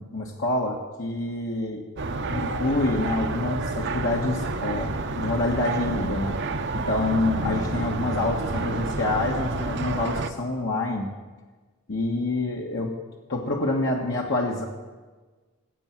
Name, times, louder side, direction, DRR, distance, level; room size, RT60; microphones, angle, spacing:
voice 1, 0.0-1.9 2.2-6.4 6.7-11.1 11.9-12.9 13.3-14.7, left 2 dB, 55° left, -1 dB, 1.5 m, -27 dB
sound 1, 2.0-10.3, right 3 dB, 50° right, 0.9 m, -29 dB
19.0 x 8.4 x 7.6 m, 1.3 s
head